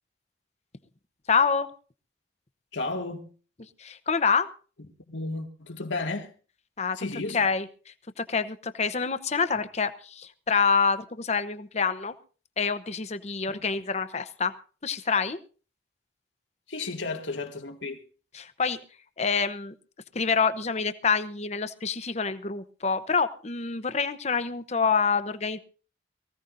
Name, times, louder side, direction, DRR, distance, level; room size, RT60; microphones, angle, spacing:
voice 1, 1.3-1.7 3.8-4.5 6.8-7.0 7.3-12.1 12.6-14.5 14.8-15.4 18.3-18.8 19.2-19.7 20.1-25.6, left 5 dB, 35° left, 0.9 m, -27 dB
voice 2, 2.7-3.3 5.1-6.3 7.0-7.4 13.5-13.7 16.7-18.0, left 3 dB, 85° left, 2.1 m, -33 dB
23.5 x 15.5 x 2.6 m
head